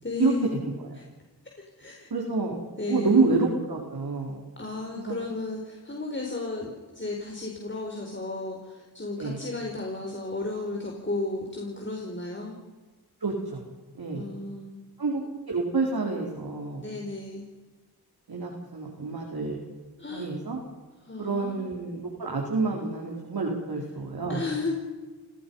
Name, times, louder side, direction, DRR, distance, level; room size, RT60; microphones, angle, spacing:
voice 1, 0.0-0.4 1.8-2.1 2.8-3.3 4.6-6.7 6.9-12.5 14.1-14.9 16.8-17.5 20.0-20.3 21.0-21.7 24.3-24.7, left 3 dB, 30° left, 0 dB, 4.7 m, -33 dB
voice 2, 0.6-1.0 2.1-2.6 2.9-4.4 5.0-5.3 9.2-9.4 13.2-13.6 13.9-14.2 15.0-16.8 18.3-19.6 20.1-20.6 21.2-24.4, right 4 dB, 70° right, -1 dB, 4.3 m, -28 dB
29.5 x 17.5 x 5.6 m, 1.3 s
cardioid pair, 50°, 38 cm